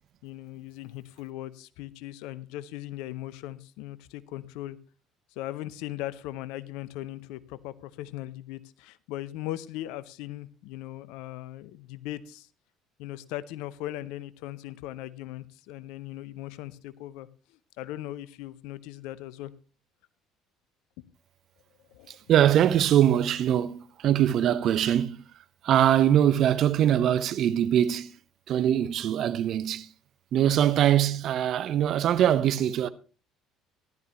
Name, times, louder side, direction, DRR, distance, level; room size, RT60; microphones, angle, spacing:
voice 1, 0.2-4.8 5.4-12.5 13.0-17.3 17.8-19.5 21.9-22.2, left 14 dB, 70° left, 0.7 m, -39 dB
voice 2, 22.3-25.2 25.6-28.1 28.5-29.9 30.3-32.9, right 10 dB, 55° right, 0.7 m, -22 dB
14.5 x 12.0 x 2.9 m
hypercardioid pair, 55°, 0 cm